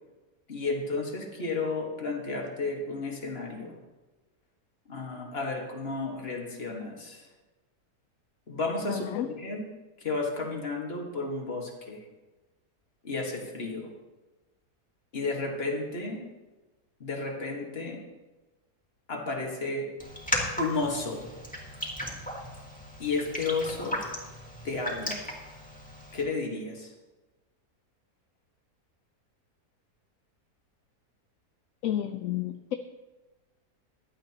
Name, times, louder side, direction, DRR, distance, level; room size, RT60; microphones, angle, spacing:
voice 1, 0.5-3.8 4.9-7.3 8.5-9.7 10.0-12.0 13.0-13.9 15.1-16.3 17.0-18.0 19.1-19.9 20.6-21.2 23.0-24.0 24.6-25.3 26.1-26.9, left 3 dB, 40° left, 0 dB, 1.9 m, -32 dB
voice 2, 8.9-9.3 31.8-32.8, left 12 dB, 70° left, 9 dB, 0.9 m, -31 dB
Raindrop, 20.0-26.2, equal, 5° left, 2.1 m, -36 dB
16.0 x 11.5 x 3.0 m, 1.2 s
omnidirectional pair, 1.6 m